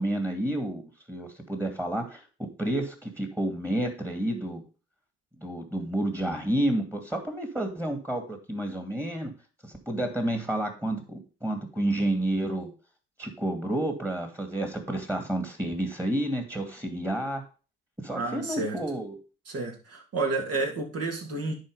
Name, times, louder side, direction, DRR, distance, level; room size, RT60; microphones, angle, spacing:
voice 1, 0.0-2.2 2.6-4.6 5.4-9.3 9.9-12.7 13.2-17.4 18.0-19.2, right 1 dB, 10° right, 5 dB, 2.4 m, -30 dB
voice 2, 18.1-18.8 19.5-21.5, right 3 dB, 50° right, 1 dB, 3.0 m, -30 dB
10.5 x 4.5 x 5.5 m, 0.36 s
hypercardioid pair, 60°, 31 cm